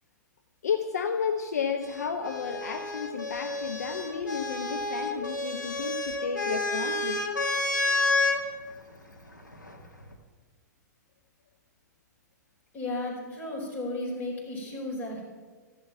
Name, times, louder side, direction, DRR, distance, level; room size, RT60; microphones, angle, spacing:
voice 1, 0.6-7.2, left 6 dB, 60° left, 6 dB, 0.8 m, -32 dB
sound 1, 1.8-8.4 9.5-10.1, left 2 dB, 90° left, 1.6 m, -30 dB
voice 2, 12.7-15.2, left 2 dB, 20° left, -3 dB, 4.9 m, -34 dB
13.5 x 11.0 x 5.8 m, 1.4 s
figure-of-eight pair, 105°, 10 cm